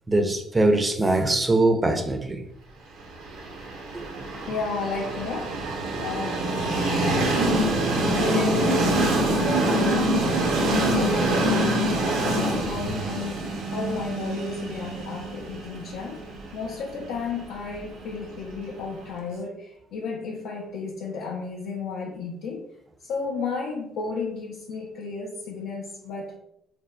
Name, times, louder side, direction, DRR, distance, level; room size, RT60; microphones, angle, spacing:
voice 1, 0.1-2.4 4.3-4.5, right 2 dB, 20° right, 0.4 m, -22 dB
Train, 3.2-19.0, right 1 dB, 80° right, 0.5 m, -25 dB
voice 2, 4.5-5.6 6.0-6.5 8.1-10.6 10.9-22.7 23.0-26.3, left 4 dB, 80° left, 0.4 m, -33 dB
3.4 x 2.0 x 2.3 m
supercardioid pair, 80°, 0 cm